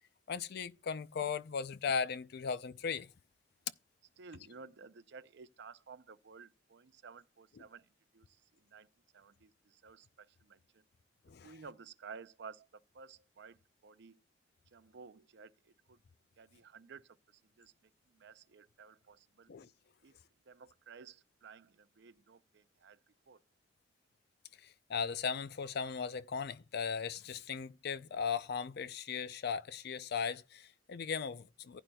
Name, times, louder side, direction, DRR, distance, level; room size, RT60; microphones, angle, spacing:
voice 1, 0.3-3.1 11.3-11.5 19.5-19.7 24.6-31.8, left 6 dB, 60° left, 0.4 m, -37 dB
voice 2, 4.2-7.9 8.1-8.9 9.1-10.8 11.4-13.6 13.8-14.2 14.7-16.0 16.4-17.7 18.1-19.5 20.0-20.2 20.5-23.0 23.3-23.4, right 5 dB, 65° right, 0.5 m, -54 dB
15.0 x 9.0 x 2.3 m
head